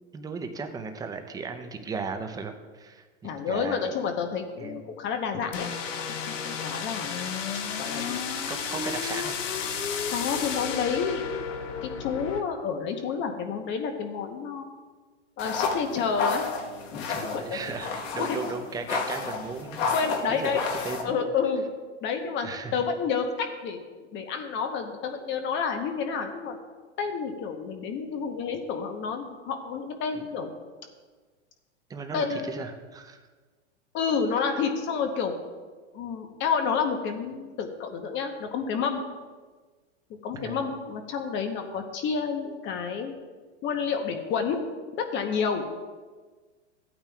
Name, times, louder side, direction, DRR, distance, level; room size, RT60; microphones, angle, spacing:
voice 1, 0.1-3.8 4.6-4.8 8.5-9.4 16.9-17.9 18.1-20.0 20.3-20.5 20.8-21.1 22.4-22.7 30.1-30.2 31.9-33.2 34.5-34.6 40.4-40.6, right 5 dB, 10° right, 6 dB, 0.5 m, -36 dB
voice 2, 3.2-5.7 6.0-6.1 6.4-7.3 7.8-8.2 10.1-11.2 11.8-14.7 15.4-16.4 16.9-17.6 18.2-18.4 19.1-19.2 19.9-20.6 21.0-21.6 22.0-26.6 27.0-30.5 32.1-32.6 33.9-35.3 35.9-39.0 40.2-43.1 43.6-44.6 45.0-45.7, left 6 dB, 30° left, 5 dB, 1.0 m, -29 dB
sound 1, 5.5-12.4, left 6 dB, 90° left, 0.9 m, -32 dB
sound 2, 15.4-21.0, left 5 dB, 55° left, 1.3 m, -31 dB
14.5 x 8.9 x 2.3 m, 1.4 s
hypercardioid pair, 130°, 37 cm